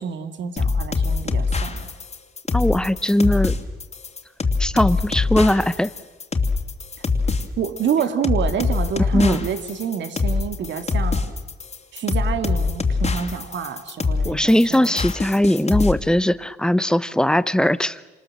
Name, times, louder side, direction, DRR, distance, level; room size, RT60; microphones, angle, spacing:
voice 1, 0.0-1.9 7.6-11.2 11.9-15.0, right 8 dB, 65° right, 9 dB, 2.4 m, -27 dB
sound 1, 0.6-15.9, left 4 dB, 35° left, 2.8 m, -23 dB
voice 2, 2.5-3.5 4.6-5.9 9.1-9.4 14.2-18.0, left 1 dB, 5° left, 15 dB, 0.9 m, -19 dB
27.5 x 27.0 x 7.6 m, 1.2 s
cardioid pair, 90°, 20 cm